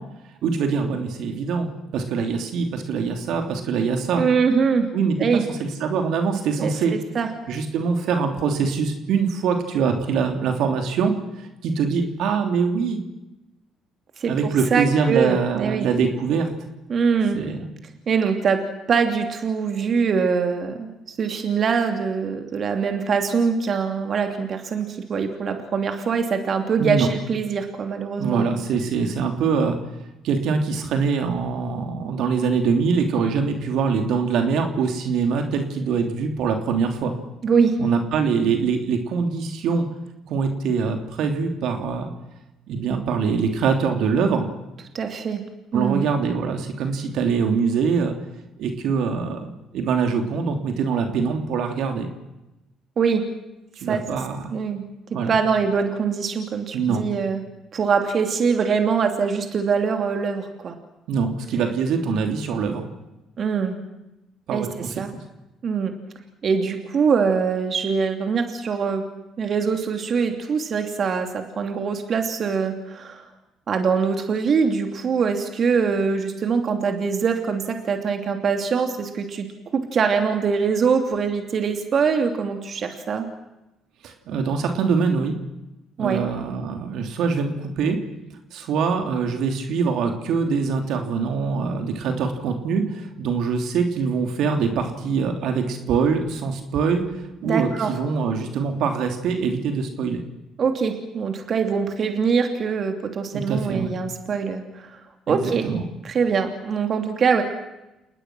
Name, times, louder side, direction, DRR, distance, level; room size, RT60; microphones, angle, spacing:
voice 1, 0.4-4.2 4.9-5.2 5.5-6.9 7.5-13.0 14.3-16.5 17.3-17.7 26.8-27.1 28.2-29.8 30.2-37.1 37.8-39.9 40.3-42.1 42.7-44.5 45.7-48.1 48.6-52.1 53.8-54.5 55.1-55.3 56.7-57.0 61.1-62.9 64.5-65.2 84.0-85.3 86.0-88.0 88.5-97.0 97.4-100.2 103.3-103.9 105.3-105.9, right 5 dB, 70° right, 4 dB, 3.2 m, -23 dB
voice 2, 4.2-4.9 5.2-5.4 6.6-7.3 14.2-15.9 16.9-17.4 18.1-18.6 18.9-28.4 37.4-37.8 44.9-45.4 45.7-46.1 53.0-53.3 53.9-54.0 54.5-54.8 55.3-57.4 57.7-60.7 63.4-63.8 64.5-65.1 65.6-66.0 66.4-69.0 69.4-73.2 73.7-79.5 79.7-83.3 86.0-86.2 97.4-97.9 100.6-105.0 105.3-105.7 106.0-107.4, right 5 dB, 50° right, 5 dB, 2.9 m, -23 dB
30.0 x 19.0 x 6.3 m, 0.95 s
hypercardioid pair, 60°, 0 cm